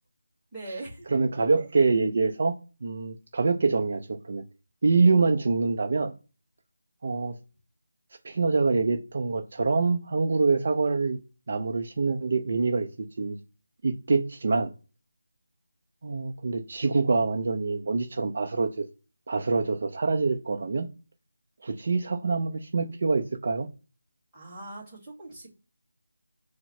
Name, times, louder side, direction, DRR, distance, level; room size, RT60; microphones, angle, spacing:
voice 1, 0.5-1.3 24.3-25.5, right 2 dB, 5° right, 1.9 m, -41 dB
voice 2, 1.1-2.6 2.8-4.4 4.8-6.1 7.0-7.4 8.2-11.2 11.5-12.9 13.2-13.4 13.8-14.7 16.0-18.8 19.3-20.9 21.6-23.7, right 4 dB, 45° right, 0.6 m, -25 dB
4.5 x 2.1 x 4.3 m
figure-of-eight pair, 170°, 0 cm